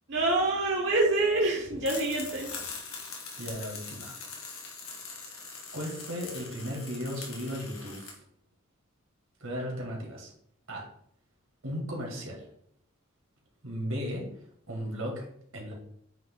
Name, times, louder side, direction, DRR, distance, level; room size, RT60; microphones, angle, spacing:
voice 1, 0.1-2.7, right 2 dB, 55° right, -3 dB, 1.1 m, -26 dB
sound 1, 1.8-8.1, left 4 dB, 85° left, 1.8 m, -42 dB
voice 2, 3.4-4.1 5.1-5.3 5.7-8.2 9.4-10.3 10.7-10.9 11.6-12.5 13.6-14.3 14.7-15.3 15.5-15.7, equal, 80° right, -1 dB, 2.4 m, -36 dB
9.0 x 3.4 x 3.8 m, 0.69 s
head